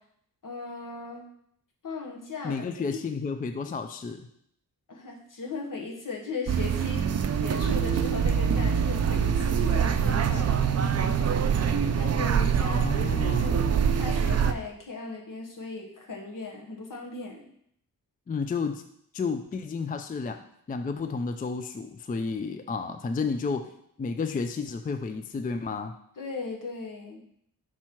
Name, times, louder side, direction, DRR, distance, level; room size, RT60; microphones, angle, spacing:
voice 1, 0.4-1.3 1.8-2.6 4.9-13.7 14.0-17.5 26.2-27.2, left 4 dB, 60° left, 0 dB, 1.3 m, -38 dB
voice 2, 2.4-4.3 12.6-13.6 18.3-18.8 19.1-25.9, left 4 dB, 25° left, 8 dB, 0.3 m, -32 dB
sound 1, 6.5-14.5, right 7 dB, 45° right, 0.4 m, -24 dB
5.9 x 4.6 x 4.4 m, 0.70 s
wide cardioid pair, 110°, 36 cm